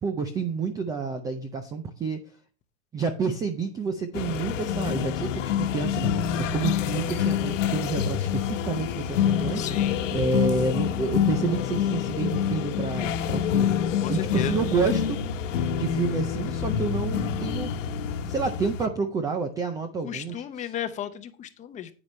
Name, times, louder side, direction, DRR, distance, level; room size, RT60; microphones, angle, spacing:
voice 1, 0.0-2.2 2.9-13.8 14.1-15.2 15.8-17.7 18.3-20.7, right 5 dB, 10° right, 8 dB, 0.4 m, -29 dB
sound 1, 4.1-18.9, left 9 dB, 70° left, 1.3 m, -27 dB
voice 2, 9.5-10.0 14.0-14.6 20.0-21.9, left 9 dB, 20° left, 10 dB, 0.8 m, -34 dB
9.6 x 9.0 x 3.2 m, 0.35 s
hypercardioid pair, 140°, 39 cm